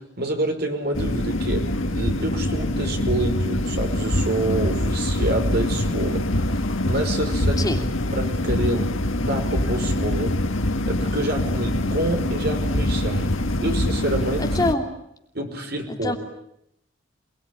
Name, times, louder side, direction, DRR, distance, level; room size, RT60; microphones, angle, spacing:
voice 1, 0.0-7.8 8.1-10.3 10.9-13.3 13.6-14.5 15.3-16.2, right 1 dB, 55° right, 5 dB, 5.3 m, -28 dB
sound 1, 0.9-14.7, left 1 dB, 85° left, 1.9 m, -24 dB
voice 2, 14.4-14.9 16.0-16.2, left 2 dB, 20° left, 3 dB, 2.9 m, -24 dB
28.0 x 21.0 x 9.8 m, 0.77 s
head